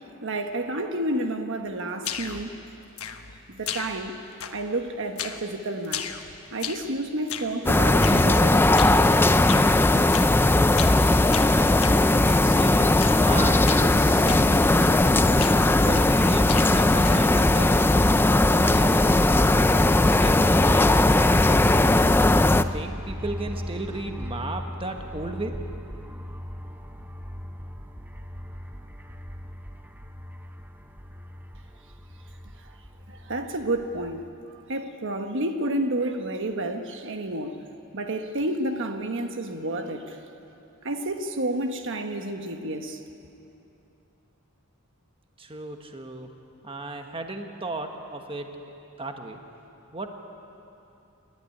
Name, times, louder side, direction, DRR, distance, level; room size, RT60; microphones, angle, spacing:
voice 1, 0.2-2.6 3.5-4.2 4.5-6.1 6.5-8.7 33.1-34.3 34.7-37.6 37.9-40.2 40.8-43.0, right 1 dB, 60° right, 6 dB, 1.2 m, -30 dB
sound 1, 2.0-2.5 3.0-3.4 3.7-4.1 4.4-4.8 5.2-5.5 5.8-6.9 7.3-7.6 8.0-8.3 8.8-9.0 9.5-9.7 10.1-10.4 10.7-11.0 11.3-12.5 13.0-13.3 13.6-13.9 14.3-14.5 14.8-15.1 15.4-16.2 16.5-17.3, left 8 dB, 85° left, 1.3 m, -35 dB
sound 2, 7.7-22.6, left 2 dB, 10° left, 0.4 m, -19 dB
voice 2, 12.4-13.0 13.3-14.8 15.3-17.9 18.4-21.0 22.7-25.6 45.4-46.3 46.6-49.4 49.9-50.1, right 2 dB, 25° right, 4 dB, 1.3 m, -35 dB
sound 3, 16.8-34.3, equal, 10° right, 0.8 m, -35 dB
27.5 x 12.0 x 10.0 m, 2.8 s
head